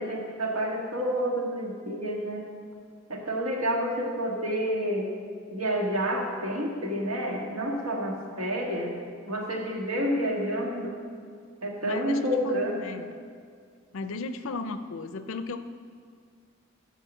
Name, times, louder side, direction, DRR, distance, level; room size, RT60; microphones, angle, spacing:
voice 1, 0.0-2.5 3.1-5.1 5.5-8.9 9.3-11.0 11.6-12.8, equal, 80° right, -1 dB, 1.7 m, -29 dB
voice 2, 11.8-13.1 13.9-15.6, left 3 dB, 65° left, 10 dB, 0.5 m, -35 dB
10.0 x 4.8 x 7.1 m, 2.1 s
head